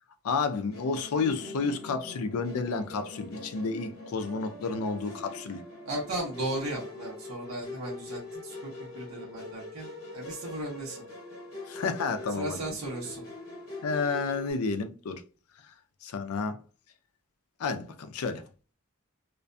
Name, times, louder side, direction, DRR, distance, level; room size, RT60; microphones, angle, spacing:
voice 1, 0.2-5.6 11.7-12.6 13.8-15.2 16.0-16.6 17.6-18.4, left 4 dB, 75° left, 0.4 m, -31 dB
Musical instrument, 0.7-14.5, left 2 dB, 60° left, 1.1 m, -43 dB
voice 2, 5.8-11.0 12.4-13.2, right 1 dB, 70° right, 0.9 m, -36 dB
2.5 x 2.2 x 2.5 m
head